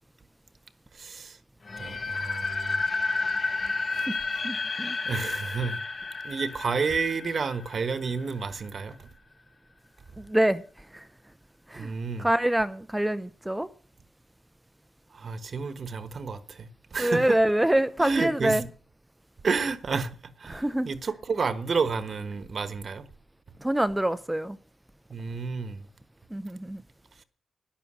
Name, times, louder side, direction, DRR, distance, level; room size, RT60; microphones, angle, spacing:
voice 1, 0.9-1.4 1.8-2.8 5.0-5.8 6.2-9.1 11.7-12.3 15.1-17.4 18.0-18.7 19.4-23.1 25.1-25.9, right 5 dB, 50° right, 1.3 m, -30 dB
sound 1, 1.7-8.5, left 3 dB, 40° left, 1.1 m, -31 dB
voice 2, 4.4-5.0 10.2-10.6 10.9-11.1 11.7-11.9 12.2-13.7 17.0-18.6 20.5-20.9 23.6-24.6 26.3-26.8, right 1 dB, 10° right, 0.6 m, -25 dB
13.0 x 11.0 x 6.3 m
wide cardioid pair, 110°, 0 cm